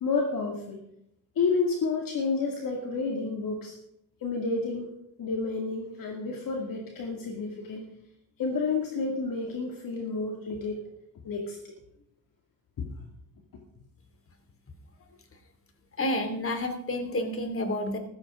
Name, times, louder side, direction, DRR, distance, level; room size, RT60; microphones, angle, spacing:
voice 1, 0.0-0.8 1.4-3.7 4.2-4.9 5.2-7.8 8.4-10.8 11.2-11.7 12.8-12.9, left 4 dB, 60° left, 1 dB, 2.3 m, -30 dB
voice 2, 16.0-18.0, left 1 dB, 35° left, 6 dB, 2.8 m, -29 dB
15.0 x 14.0 x 3.7 m, 0.77 s
cardioid pair, 100°, 37 cm